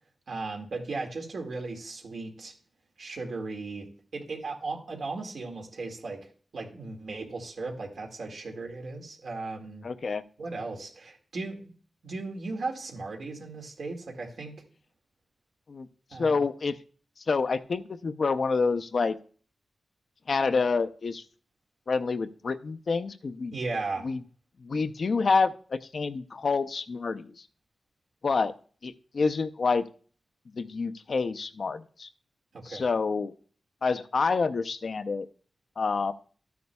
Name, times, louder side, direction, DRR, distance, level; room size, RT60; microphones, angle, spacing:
voice 1, 0.3-2.5 3.0-3.9 4.1-9.9 10.4-11.7 12.0-14.5 16.1-16.4 23.5-24.1 32.5-32.9, right 3 dB, 70° right, 2 dB, 1.9 m, -36 dB
voice 2, 9.8-10.2 15.7-15.9 16.2-16.8 17.2-19.2 20.3-21.2 21.9-23.5 24.0-24.2 24.6-27.5 28.2-28.5 28.8-29.9 30.5-32.1 32.6-33.3 33.8-35.3 35.8-36.1, left 4 dB, 55° left, 11 dB, 0.5 m, -28 dB
13.0 x 9.4 x 2.3 m, 0.43 s
wide cardioid pair, 125°, 0 cm